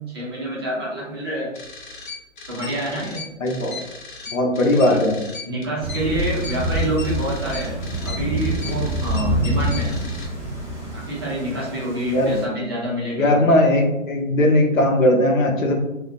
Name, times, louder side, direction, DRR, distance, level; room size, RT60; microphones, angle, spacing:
voice 1, 0.1-1.5 2.5-3.2 4.8-5.0 5.5-7.8 8.0-10.0 10.9-13.4, right 1 dB, 20° right, -7 dB, 0.4 m, -27 dB
sound 1, 1.5-10.3, left 4 dB, 40° left, 0.5 m, -37 dB
voice 2, 3.4-3.8 4.3-5.2 12.0-12.3 13.2-15.8, left 1 dB, 85° left, 2 dB, 0.7 m, -18 dB
Thunder / Rain, 5.8-12.4, right 1 dB, 5° left, 0.8 m, -26 dB
2.5 x 2.1 x 2.5 m, 0.96 s
hypercardioid pair, 145°, 39 cm